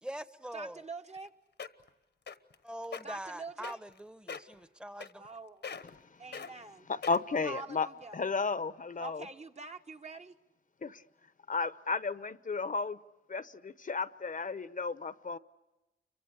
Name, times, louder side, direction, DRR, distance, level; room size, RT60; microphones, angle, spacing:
voice 1, 0.0-0.8 2.6-5.2, right 1 dB, 5° right, 1.0 m, -43 dB
voice 2, 0.5-1.3 3.0-3.8 5.2-5.6 6.2-6.8 7.4-8.2 9.0-10.3, right 3 dB, 40° right, 1.3 m, -45 dB
sound 1, 1.2-1.3 1.6-1.9 2.3-2.5 2.8-3.0 3.6-4.0 4.3-4.5 5.0-5.4 5.6-6.0 6.3-6.5 7.0-7.4 8.0-8.1, left 6 dB, 75° left, 1.2 m, -41 dB
voice 3, 6.9-7.9 8.1-9.3 10.8-11.0 11.5-13.0 13.3-15.4, left 4 dB, 50° left, 0.9 m, -33 dB
29.5 x 24.5 x 8.2 m
wide cardioid pair, 90°, 18 cm